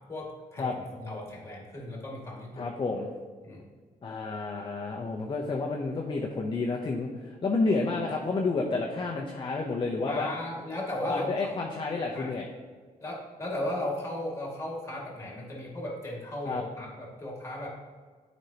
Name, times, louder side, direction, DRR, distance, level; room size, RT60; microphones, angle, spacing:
voice 1, 0.1-2.7 3.4-3.6 10.1-11.3 12.1-12.3 13.0-17.7, left 1 dB, 20° left, -2 dB, 2.1 m, -36 dB
voice 2, 2.5-3.1 4.0-10.3 11.1-12.5 16.4-16.6, left 3 dB, 35° left, 0 dB, 0.7 m, -30 dB
11.0 x 5.2 x 2.9 m, 1.5 s
wide cardioid pair, 135°, 15 cm